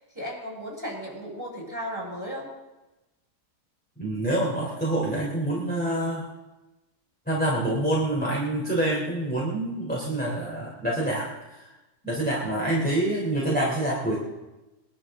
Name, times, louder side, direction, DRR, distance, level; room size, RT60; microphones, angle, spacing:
voice 1, 0.1-2.5, equal, 10° right, -3 dB, 6.0 m, -35 dB
voice 2, 4.0-6.2 7.3-11.6 12.0-14.3, right 1 dB, 5° left, -6 dB, 3.5 m, -26 dB
23.5 x 12.5 x 3.8 m, 1.0 s
omnidirectional pair, 1.7 m